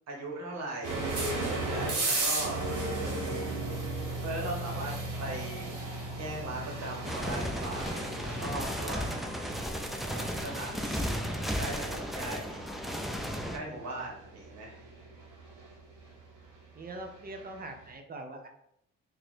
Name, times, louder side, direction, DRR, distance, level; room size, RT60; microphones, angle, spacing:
voice 1, 0.1-2.6 3.0-3.5 4.2-4.9 5.2-5.7 6.1-9.0 10.1-11.2 11.6-12.7 13.5-14.8, right 2 dB, 60° right, -2 dB, 1.4 m, -39 dB
sound 1, 0.8-17.6, right 2 dB, 80° right, 1.2 m, -36 dB
sound 2, 7.0-13.6, equal, ahead, 0.4 m, -34 dB
voice 2, 16.7-18.5, right 2 dB, 30° right, 4 dB, 0.7 m, -42 dB
3.0 x 2.7 x 4.2 m, 0.75 s
cardioid pair, 90°, 30 cm